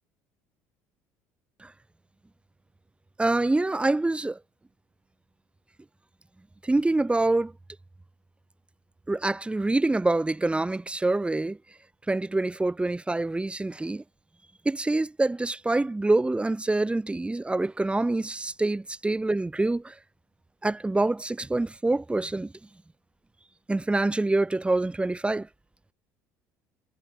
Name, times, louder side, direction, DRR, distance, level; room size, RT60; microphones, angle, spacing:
voice 1, 3.2-4.4 6.6-7.5 9.1-11.6 12.1-14.0 14.7-19.9 20.6-22.5 23.7-25.5, right 2 dB, 15° right, 7.1 m, -26 dB
hypercardioid pair, 70°, 8 cm